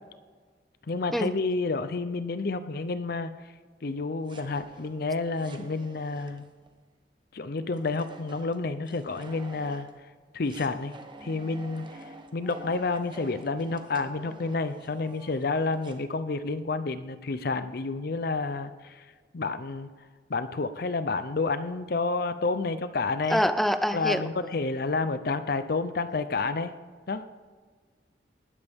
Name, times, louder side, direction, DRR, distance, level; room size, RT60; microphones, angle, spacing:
voice 1, 0.9-3.3 3.8-6.5 7.3-9.9 10.3-10.9 11.2-19.1 19.3-19.9 20.3-23.4 23.9-26.7 27.1-27.2, left 3 dB, 55° left, 11 dB, 0.6 m, -30 dB
sound 1, 4.3-6.8 7.7-10.0 10.5-16.0, right 2 dB, 25° right, 1.0 m, -49 dB
voice 2, 23.3-24.3, equal, ahead, 11 dB, 0.5 m, -25 dB
19.5 x 12.0 x 3.6 m, 1.5 s
head